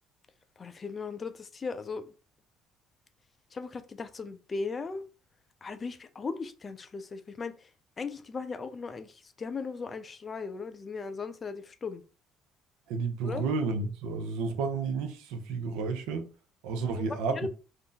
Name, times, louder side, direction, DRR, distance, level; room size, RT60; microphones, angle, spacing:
voice 1, 0.6-2.1 3.5-5.1 5.6-7.7 8.0-12.0 13.2-13.5 17.0-17.5, left 4 dB, 35° left, 0.4 m, -37 dB
voice 2, 12.9-16.2 16.6-17.5, right 4 dB, 85° right, 0.5 m, -31 dB
2.5 x 2.1 x 3.7 m
supercardioid pair, 80°, 0 cm